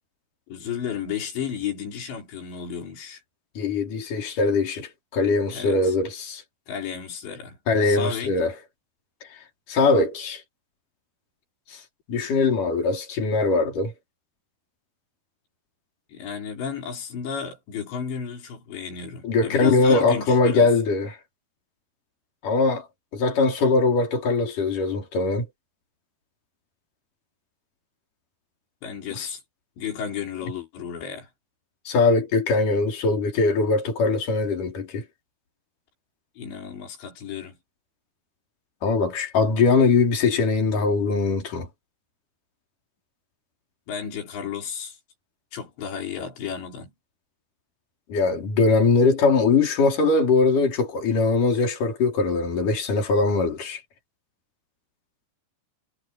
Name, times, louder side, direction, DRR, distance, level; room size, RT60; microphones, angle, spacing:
voice 1, 0.5-3.2 5.5-5.9 6.7-7.6 7.8-8.3 16.1-20.7 28.8-29.4 29.8-31.3 36.4-37.6 43.9-45.0 45.5-46.9, left 7 dB, 90° left, 6.5 m, -33 dB
voice 2, 3.6-6.4 7.7-8.5 9.7-10.4 12.1-13.9 19.2-21.2 22.4-22.9 23.1-25.5 29.1-29.3 31.9-35.0 38.8-41.7 48.1-53.8, left 3 dB, 50° left, 6.0 m, -21 dB
omnidirectional pair, 4.9 m